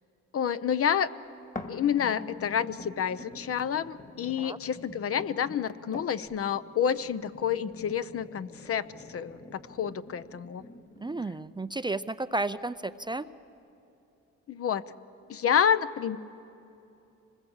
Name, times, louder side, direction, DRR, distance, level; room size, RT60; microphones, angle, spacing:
voice 1, 0.3-1.1 1.7-10.6 14.5-14.8 15.3-16.2, left 8 dB, 50° left, 13 dB, 0.8 m, -29 dB
sound 1, 1.5-11.5 12.1-12.2, left 2 dB, 25° left, 2.0 m, -46 dB
voice 2, 11.0-13.3, right 2 dB, 15° right, 12 dB, 0.5 m, -32 dB
26.0 x 20.5 x 8.1 m, 2.8 s
cardioid pair, 90°, 30 cm